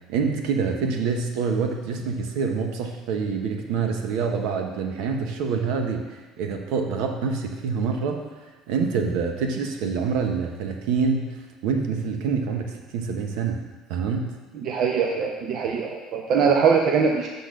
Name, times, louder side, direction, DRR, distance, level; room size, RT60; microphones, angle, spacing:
voice 1, 0.1-8.3 8.7-13.6 13.9-14.4, right 5 dB, 70° right, 4 dB, 0.9 m, -26 dB
voice 2, 14.5-17.3, right 6 dB, 40° right, 2 dB, 0.6 m, -22 dB
6.9 x 4.1 x 6.3 m, 1.2 s
cardioid pair, 180°, 0 cm